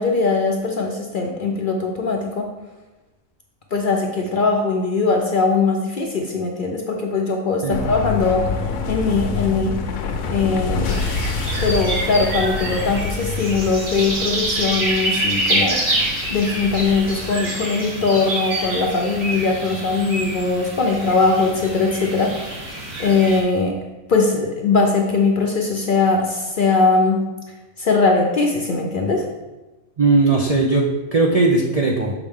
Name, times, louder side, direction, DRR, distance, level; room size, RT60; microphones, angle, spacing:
voice 1, 0.0-2.5 3.7-8.5 8.9-9.8 10.3-10.9 11.6-15.8 16.3-22.7 23.0-23.8 24.1-27.2 27.8-29.2, left 4 dB, 55° left, 1 dB, 0.6 m, -20 dB
sound 1, 7.7-17.3, left 4 dB, 75° left, 1.1 m, -27 dB
sound 2, 10.8-23.4, right 1 dB, 50° right, 1.7 m, -26 dB
voice 2, 30.0-32.1, right 3 dB, 70° right, -1 dB, 0.3 m, -18 dB
6.4 x 5.0 x 3.5 m, 1.1 s
omnidirectional pair, 1.5 m